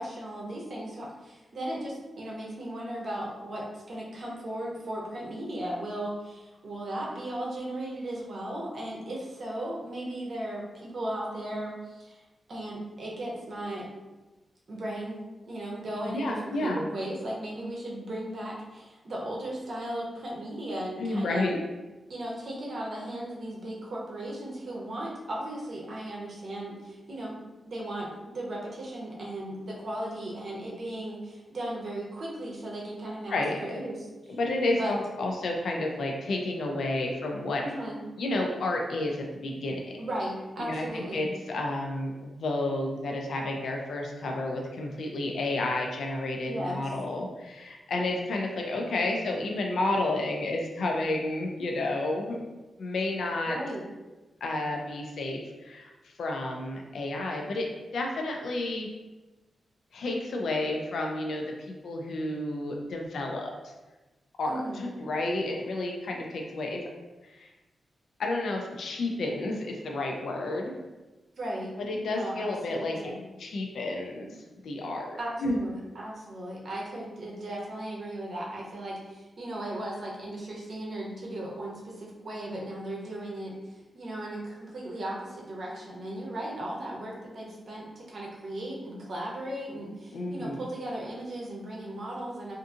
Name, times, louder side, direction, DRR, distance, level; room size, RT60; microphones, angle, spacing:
voice 1, 0.0-12.2 12.5-13.9 14.7-15.2 15.5-21.5 22.1-27.4 27.6-34.4 34.7-34.9 37.6-38.0 40.0-41.3 46.5-46.8 53.5-53.8 64.5-64.8 71.4-71.7 72.1-73.2 75.2-92.5, right 1 dB, 50° right, -3 dB, 0.6 m, -36 dB
voice 2, 16.1-16.8 21.0-21.6 33.3-33.7 34.4-37.6 38.2-39.9 40.6-52.4 52.8-53.6 54.4-55.9 56.2-58.9 59.9-63.7 64.4-66.8 67.3-67.5 68.2-70.7 71.8-73.0 73.4-74.4 74.6-75.6 90.1-90.6, left 2 dB, 75° left, 1 dB, 0.4 m, -31 dB
2.6 x 2.5 x 2.4 m, 1.1 s
wide cardioid pair, 155°, 0 cm